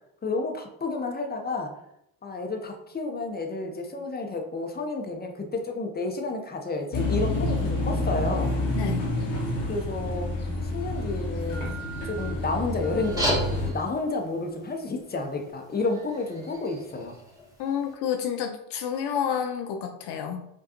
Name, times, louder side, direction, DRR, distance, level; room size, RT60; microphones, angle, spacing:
voice 1, 0.2-1.8 2.2-8.5 9.7-10.3 10.6-11.7 12.0-17.2, left 3 dB, 20° left, 3 dB, 0.8 m, -31 dB
sound 1, 6.9-13.7, left 1 dB, 80° left, 1.2 m, -28 dB
voice 2, 8.8-9.1 17.6-20.5, left 8 dB, 65° left, 5 dB, 0.5 m, -29 dB
sound 2, 12.9-17.9, equal, 10° right, 1.3 m, -35 dB
4.9 x 2.3 x 2.9 m, 0.79 s
hypercardioid pair, 55°, 44 cm